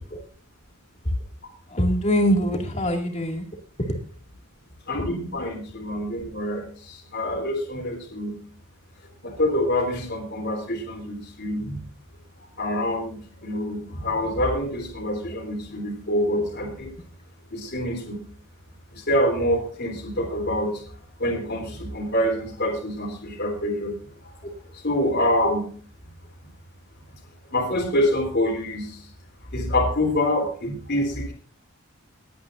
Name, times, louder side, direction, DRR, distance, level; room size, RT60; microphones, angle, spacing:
voice 1, 1.7-3.5 3.8-3.9, equal, 30° left, 3 dB, 2.4 m, -23 dB
voice 2, 4.9-8.3 9.2-11.8 12.6-16.9 17.5-18.2 18.9-20.8 21.2-23.9 24.8-25.6 27.5-29.0 29.5-31.3, left 1 dB, 50° left, 1 dB, 3.4 m, -26 dB
20.0 x 9.5 x 2.6 m, 0.42 s
head